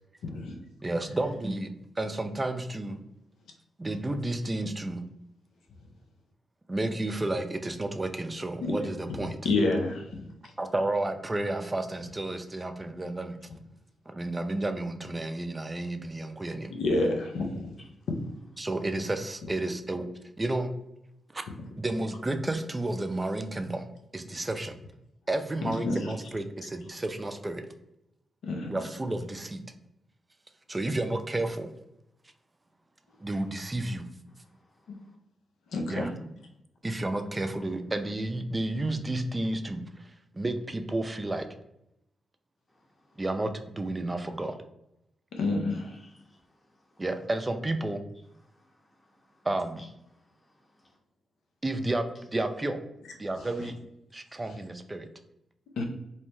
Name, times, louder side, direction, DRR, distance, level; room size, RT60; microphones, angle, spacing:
voice 1, 0.2-0.6 8.6-8.7 9.1-9.2 9.4-10.2 16.8-17.7 25.7-26.1 28.4-28.7 35.7-36.1 45.3-45.9 53.3-53.4 55.8-55.9, left 2 dB, 80° left, 0.5 m, -28 dB
voice 2, 0.8-1.7 2.0-3.0 3.8-5.1 6.7-9.4 10.6-13.4 14.1-16.7 18.6-20.1 20.4-20.7 21.3-21.4 21.8-23.8 24.1-24.7 25.3-27.6 28.7-29.6 30.7-31.7 33.2-34.1 35.9-36.1 36.8-41.5 43.2-44.6 47.0-48.0 49.4-49.8 51.6-52.0 52.3-52.8 53.2-53.7 54.1-55.1, right 2 dB, 25° right, 0.4 m, -31 dB
voice 3, 34.3-35.2 42.7-43.2 45.7-47.0 48.4-49.5 49.8-51.0, left 1 dB, 20° left, 0.8 m, -62 dB
2.7 x 2.1 x 3.1 m
supercardioid pair, 45°, 0 cm